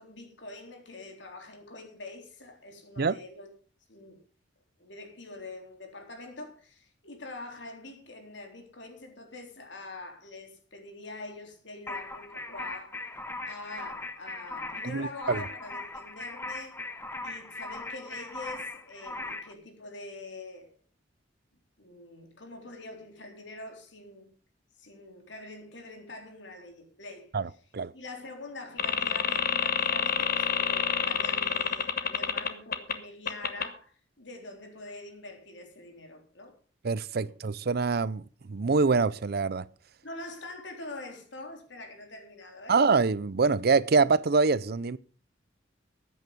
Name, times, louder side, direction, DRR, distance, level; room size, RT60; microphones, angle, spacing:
voice 1, 0.0-3.5 3.9-4.2 4.8-13.0 13.5-16.8 17.2-20.8 21.8-24.3 24.8-27.6 27.9-36.5 37.2-37.3 40.0-42.8, left 2 dB, 70° left, 3.7 m, -45 dB
sound 1, 11.9-19.5, left 2 dB, 15° left, 1.2 m, -39 dB
voice 2, 14.8-15.4 27.3-27.9 36.8-39.6 42.7-45.0, right 4 dB, 60° right, 0.6 m, -25 dB
sound 2, 28.8-32.9 33.3-33.6, left 7 dB, 55° left, 1.4 m, -28 dB
14.0 x 9.5 x 5.2 m
head